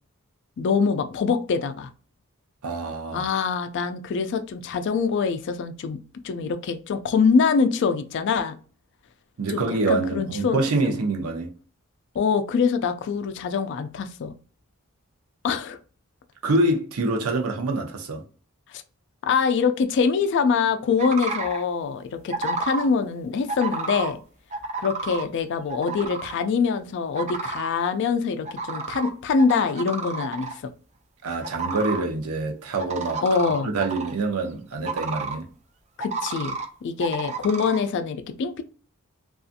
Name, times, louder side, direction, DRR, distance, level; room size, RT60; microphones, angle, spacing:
voice 1, 0.6-1.9 3.1-6.0 6.2-8.6 9.5-9.6 9.9-10.9 12.1-14.3 15.4-15.8 18.7-18.8 19.2-24.2 24.8-30.6 33.2-33.7 36.0-36.6 36.8-38.6, left 5 dB, 55° left, 0.3 m, -24 dB
voice 2, 2.6-3.3 9.4-11.5 16.4-18.2 31.2-33.2 33.7-35.4, right 2 dB, 90° right, 0.6 m, -26 dB
sound 1, 21.0-21.6 22.3-22.9 23.5-24.1 24.5-25.2 25.7-26.4 27.1-27.7 28.5-29.1 29.4-30.6 31.4-32.0 32.8-34.1 34.8-35.4 36.0-36.7 37.0-37.8, right 3 dB, 30° right, 0.3 m, -30 dB
2.6 x 2.4 x 2.4 m
head